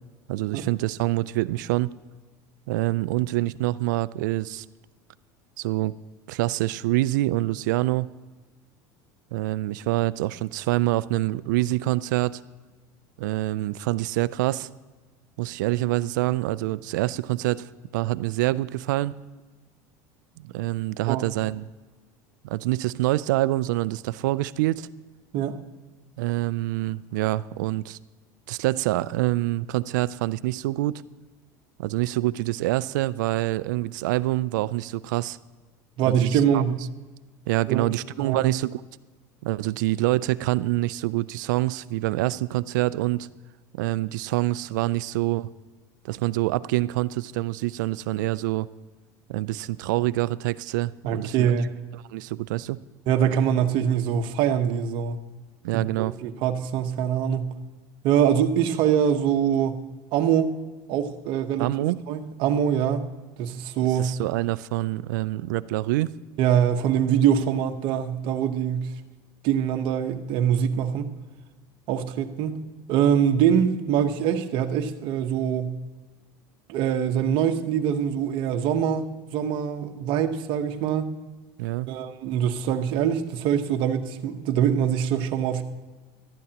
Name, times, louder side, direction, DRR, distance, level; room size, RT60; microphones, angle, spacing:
voice 1, 0.3-1.9 2.7-4.7 5.6-6.0 6.3-8.1 9.3-12.4 13.2-14.7 15.4-17.7 17.9-19.1 20.4-21.6 22.4-24.9 26.2-28.0 28.5-31.0 31.8-35.4 36.1-36.6 37.5-38.8 39.4-43.3 43.8-45.5 46.0-48.7 49.3-51.5 52.1-52.8 55.6-56.1 61.6-62.0 63.9-66.2 81.6-81.9, right 17 dB, 85° right, 18 dB, 0.4 m, -26 dB
voice 2, 36.0-36.8 37.7-37.9 38.2-38.5 51.1-51.7 53.1-55.2 55.7-57.6 58.0-59.8 60.1-60.5 60.9-61.7 62.1-63.1 63.4-64.1 66.4-68.9 69.4-71.1 71.9-72.6 72.9-75.8 76.7-81.1 81.9-85.6, right 9 dB, 60° right, 7 dB, 1.0 m, -24 dB
18.0 x 12.5 x 2.9 m, 1.3 s
supercardioid pair, 115°, 10 cm